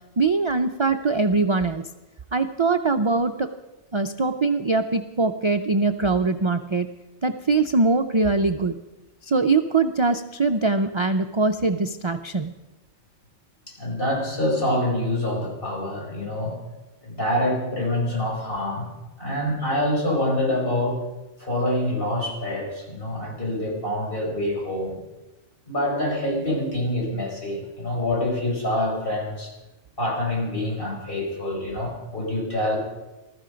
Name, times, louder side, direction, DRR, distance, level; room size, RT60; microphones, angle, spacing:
voice 1, 0.2-1.8 2.3-3.5 3.9-6.9 7.2-8.8 9.2-12.5, right 3 dB, 40° right, 7 dB, 0.4 m, -22 dB
voice 2, 13.7-16.6 17.0-18.8 19.2-21.0 21.4-25.0 25.7-29.5 30.0-32.8, left 1 dB, 50° left, -2 dB, 5.1 m, -26 dB
20.5 x 13.5 x 5.1 m, 1.0 s
omnidirectional pair, 1.2 m